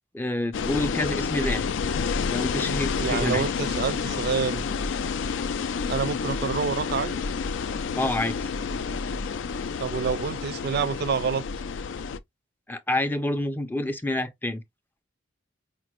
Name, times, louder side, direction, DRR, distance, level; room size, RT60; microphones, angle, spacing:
voice 1, 0.1-1.7 2.3-3.4 8.0-8.5 12.7-14.6, left 1 dB, 10° left, 0.4 m, -28 dB
sound 1, 0.5-12.2, left 5 dB, 75° left, 0.4 m, -29 dB
voice 2, 3.0-4.7 5.9-7.2 9.8-11.5, right 6 dB, 55° right, 0.4 m, -27 dB
5.0 x 2.1 x 2.9 m
head